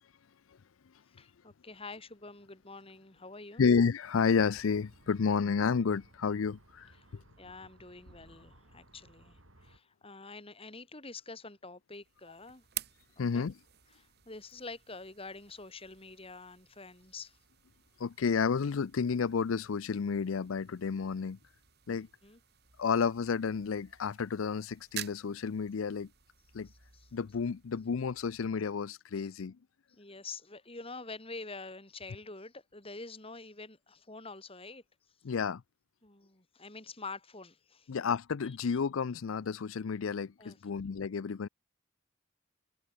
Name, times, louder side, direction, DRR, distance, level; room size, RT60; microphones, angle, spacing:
voice 1, 1.2-3.6 7.4-12.6 13.3-13.5 14.0-17.4 21.9-22.4 26.7-27.1 29.9-34.8 36.0-37.9 38.7-38.8 40.4-40.6, left 3 dB, 30° left, 3.8 m, -47 dB
voice 2, 3.6-7.2 13.2-13.5 18.0-21.4 21.9-22.1 22.8-26.1 26.5-26.7 27.1-29.6 35.2-35.6 37.9-41.5, left 5 dB, 80° left, 0.5 m, -31 dB
sound 1, 4.3-9.8, right 1 dB, 80° right, 7.3 m, -60 dB
sound 2, 11.9-28.8, right 12 dB, 50° right, 2.7 m, -50 dB
head